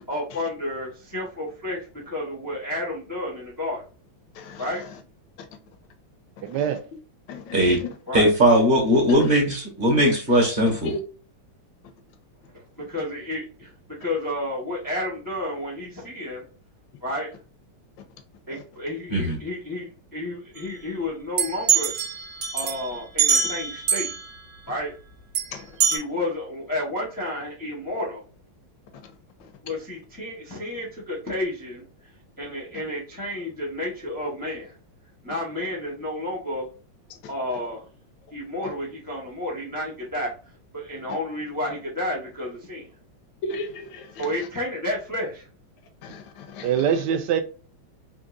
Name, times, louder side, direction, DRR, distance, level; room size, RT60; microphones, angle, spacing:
voice 1, 0.1-3.8 4.6-4.8 8.1-8.3 12.5-16.4 17.0-17.4 18.5-22.0 22.5-24.1 24.7-24.9 25.9-28.2 29.6-31.8 32.4-34.7 35.2-36.7 37.3-37.8 38.3-40.3 40.7-42.8 44.2-45.4, left 1 dB, 25° left, 0.5 m, -31 dB
voice 2, 6.4-6.8 46.6-47.4, right 8 dB, 75° right, 1.0 m, -23 dB
voice 3, 7.3-7.9 10.8-11.0 18.5-18.6 25.5-25.7 43.4-44.3 46.0-46.8, left 2 dB, 75° left, 1.2 m, -35 dB
voice 4, 8.1-10.9 19.1-19.4, equal, 35° right, 0.9 m, -19 dB
sound 1, 21.4-24.3 25.3-25.4 25.8-26.0, right 7 dB, 55° right, 1.2 m, -23 dB
3.6 x 2.6 x 2.4 m
omnidirectional pair, 2.2 m